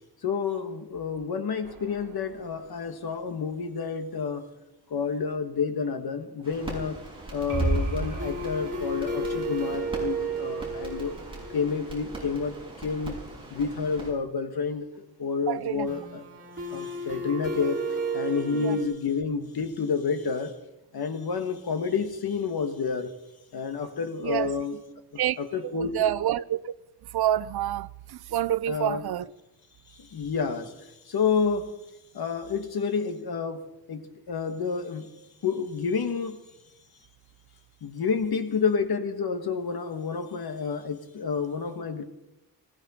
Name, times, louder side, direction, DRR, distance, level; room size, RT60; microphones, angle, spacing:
voice 1, 0.2-4.5 4.9-7.0 7.3-11.2 11.5-13.2 13.5-14.9 15.2-16.2 16.7-20.5 20.9-23.2 23.5-24.8 25.4-26.1 28.7-29.0 29.9-31.7 32.1-35.1 35.4-36.4 37.8-42.0, left 5 dB, 75° left, 1.6 m, -29 dB
sound 1, 1.6-2.8 3.1-3.2 3.5-3.6 7.5-13.2 15.9-18.8, right 2 dB, 30° right, 4.6 m, -32 dB
sound 2, 6.4-14.1, right 2 dB, 15° right, 6.3 m, -41 dB
voice 2, 15.5-15.9 18.5-18.8 24.2-24.5 25.2-25.4 25.6-26.7 27.1-29.3, right 12 dB, 80° right, 0.6 m, -28 dB
20.0 x 16.5 x 4.3 m
wide cardioid pair, 145°, 37 cm